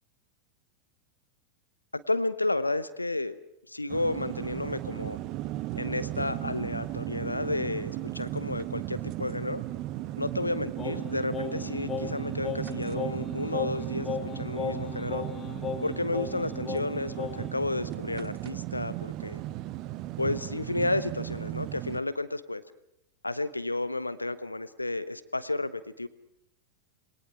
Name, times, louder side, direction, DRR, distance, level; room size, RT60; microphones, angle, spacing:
voice 1, 1.9-3.4 3.7-5.2 5.7-9.6 10.2-15.2 15.8-19.4 20.2-22.6 23.2-26.1, left 2 dB, 85° left, 15 dB, 0.9 m, -32 dB
sound 1, 3.9-22.0, right 16 dB, 40° right, 0.7 m, -36 dB
Singing, 10.8-17.6, left 6 dB, 20° left, 2.5 m, -36 dB
27.0 x 21.5 x 4.8 m, 0.82 s
figure-of-eight pair, 90°, 0 cm